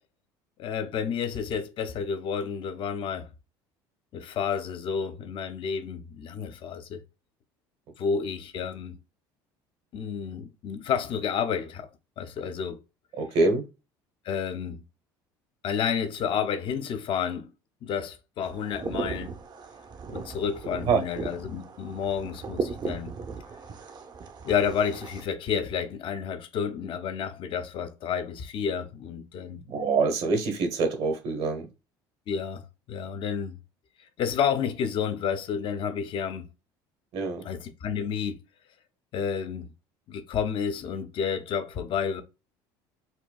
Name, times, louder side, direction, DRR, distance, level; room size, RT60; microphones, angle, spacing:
voice 1, 0.6-3.3 4.1-7.0 8.0-9.0 9.9-11.9 12.2-12.8 14.3-14.8 15.6-17.5 17.8-19.3 20.1-23.1 24.4-29.6 32.3-33.6 34.2-36.5 37.4-38.4 39.1-39.7 40.1-42.2, left 7 dB, 50° left, 0.6 m, -30 dB
voice 2, 13.2-13.6 20.9-21.0 29.7-31.7 37.1-37.5, right 4 dB, 60° right, 1.1 m, -25 dB
sound 1, 18.4-25.2, right 4 dB, 40° right, 0.7 m, -37 dB
4.3 x 2.2 x 2.3 m
supercardioid pair, 85°, 11 cm